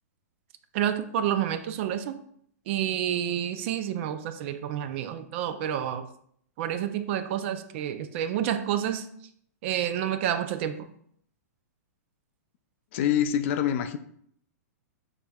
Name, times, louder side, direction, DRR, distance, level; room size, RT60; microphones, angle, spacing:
voice 1, 0.7-2.2 2.7-6.0 6.6-9.1 9.6-10.9, right 10 dB, 45° right, 10 dB, 0.5 m, -29 dB
voice 2, 12.9-14.0, left 10 dB, 50° left, 10 dB, 0.4 m, -25 dB
6.7 x 3.4 x 2.3 m, 0.66 s
hypercardioid pair, 135°, 9 cm